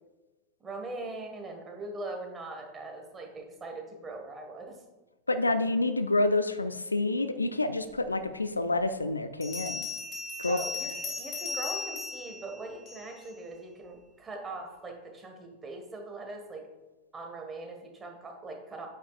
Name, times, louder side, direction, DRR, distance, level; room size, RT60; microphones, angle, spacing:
voice 1, 0.6-4.8 10.5-16.6 17.1-18.9, right 2 dB, 20° right, 2 dB, 1.6 m, -41 dB
voice 2, 5.3-9.9 10.4-10.6, left 2 dB, 80° left, 11 dB, 0.4 m, -28 dB
Bell, 8.2-8.3 9.4-13.3, left 3 dB, 30° left, 2.1 m, -37 dB
9.0 x 7.1 x 2.4 m, 1.1 s
figure-of-eight pair, 90°, 0 cm